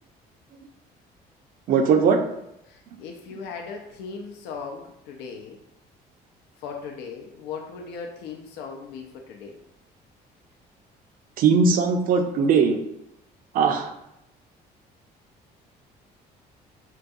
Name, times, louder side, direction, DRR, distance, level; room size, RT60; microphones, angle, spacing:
voice 1, 1.7-2.2 11.4-12.8 13.5-13.9, right 5 dB, 55° right, 6 dB, 0.5 m, -19 dB
voice 2, 2.7-5.6 6.6-9.6, left 5 dB, 90° left, 2 dB, 0.4 m, -38 dB
3.8 x 2.3 x 2.6 m, 0.83 s
cardioid pair, 110°, 17 cm